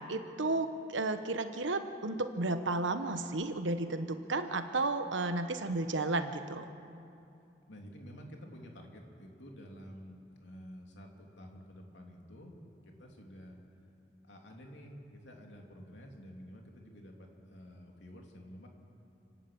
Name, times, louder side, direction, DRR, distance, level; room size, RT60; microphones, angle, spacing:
voice 1, 0.0-6.6, right 2 dB, 90° right, 8 dB, 1.2 m, -33 dB
voice 2, 7.7-13.6 14.2-18.7, equal, 80° left, 1 dB, 3.0 m, -50 dB
29.5 x 11.5 x 8.7 m, 2.6 s
head